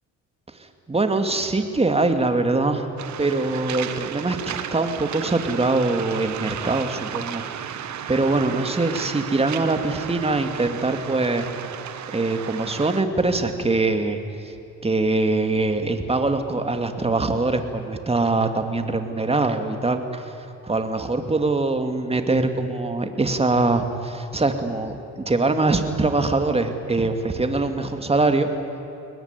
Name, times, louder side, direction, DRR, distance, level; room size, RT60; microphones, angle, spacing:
voice 1, 0.5-2.9 3.2-11.5 12.1-14.5 14.8-28.5, right 3 dB, 20° right, 6 dB, 2.4 m, -23 dB
Waves surf, 3.0-13.0, right 9 dB, 70° right, 1.3 m, -33 dB
23.0 x 20.0 x 9.8 m, 2.8 s
cardioid pair, 90°, 30 cm